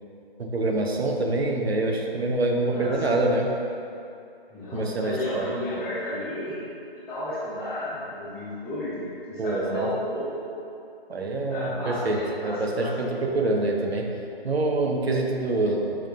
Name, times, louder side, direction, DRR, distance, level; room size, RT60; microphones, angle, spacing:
voice 1, 0.4-3.5 4.7-5.6 9.4-9.9 11.1-14.0 14.4-16.1, right 2 dB, 85° right, 1 dB, 0.9 m, -26 dB
voice 2, 4.5-6.6 7.1-10.4 11.5-13.2, left 1 dB, 5° left, -17 dB, 0.7 m, -32 dB
7.7 x 3.6 x 3.8 m, 2.6 s
figure-of-eight pair, 145°, 31 cm